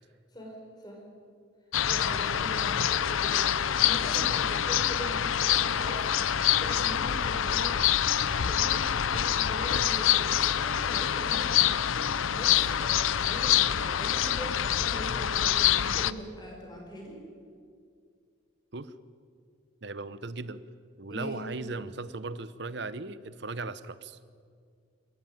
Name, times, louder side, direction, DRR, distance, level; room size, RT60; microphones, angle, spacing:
voice 1, 0.3-1.0 1.8-17.2 21.1-21.7, equal, 20° left, 0 dB, 5.3 m, -41 dB
sound 1, 1.7-16.1, left 10 dB, 80° left, 0.6 m, -26 dB
voice 2, 19.8-20.6 21.0-24.2, right 3 dB, 55° right, 14 dB, 0.9 m, -37 dB
26.0 x 14.0 x 9.4 m, 2.2 s
head